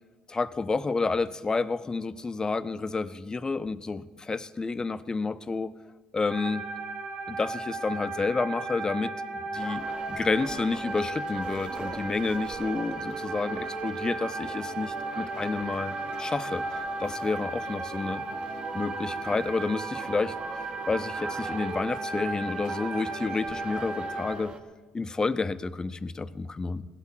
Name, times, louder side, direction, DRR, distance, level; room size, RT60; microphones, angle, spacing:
voice 1, 0.3-5.7 6.1-6.7 7.3-9.1 9.5-9.8 10.1-18.2 18.7-20.3 20.9-24.5 24.9-26.9, left 4 dB, 25° left, 13 dB, 0.6 m, -30 dB
sound 1, 6.3-24.3, right 3 dB, 75° right, 2.8 m, -35 dB
sound 2, 9.5-24.6, right 3 dB, 40° right, 1.5 m, -41 dB
17.0 x 12.0 x 4.5 m, 1.3 s
supercardioid pair, 70°, 3 cm